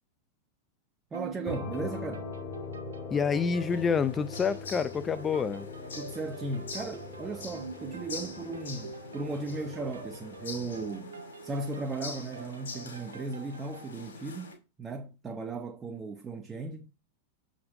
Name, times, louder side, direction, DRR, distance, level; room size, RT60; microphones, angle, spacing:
voice 1, 1.1-2.3 6.0-11.2 11.4-16.9, right 3 dB, 20° right, 0.7 m, -36 dB
sound 1, 1.1-13.9, right 5 dB, 70° right, 1.1 m, -46 dB
sound 2, 1.5-11.0, left 4 dB, 35° left, 1.1 m, -42 dB
voice 2, 3.1-5.7, left 6 dB, 20° left, 0.5 m, -28 dB
sound 3, 3.5-14.6, left 4 dB, 65° left, 2.5 m, -45 dB
6.8 x 5.2 x 4.1 m
figure-of-eight pair, 90°, 0 cm